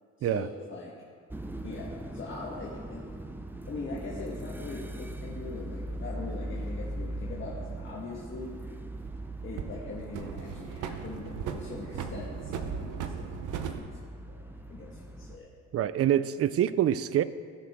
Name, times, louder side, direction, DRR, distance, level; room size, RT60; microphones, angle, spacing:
voice 1, 0.2-0.9 1.6-3.0 3.7-8.5 9.4-15.5, left 3 dB, 40° left, -5 dB, 1.5 m, -42 dB
sound 1, 1.3-15.4, right 1 dB, 5° right, 0.6 m, -40 dB
sound 2, 3.1-3.2 4.7-6.0 8.2-9.2 9.6-13.8, right 7 dB, 80° right, 0.8 m, -38 dB
voice 2, 15.7-17.2, right 11 dB, 50° right, 15 dB, 0.4 m, -25 dB
15.5 x 6.3 x 3.6 m, 2.1 s
cardioid pair, 90°, 30 cm